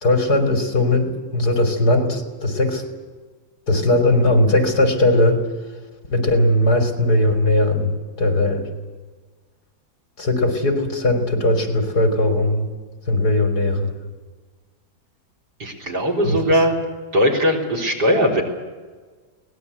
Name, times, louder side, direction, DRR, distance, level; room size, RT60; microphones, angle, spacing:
voice 1, 0.0-2.8 3.7-5.4 6.1-7.9 8.2-8.7 10.2-12.7 13.1-13.9 16.2-16.4, left 1 dB, 60° left, 4 dB, 3.9 m, -18 dB
voice 2, 15.6-16.8 17.1-18.4, equal, 65° right, 2 dB, 4.4 m, -19 dB
22.5 x 19.5 x 8.3 m, 1.4 s
omnidirectional pair, 1.9 m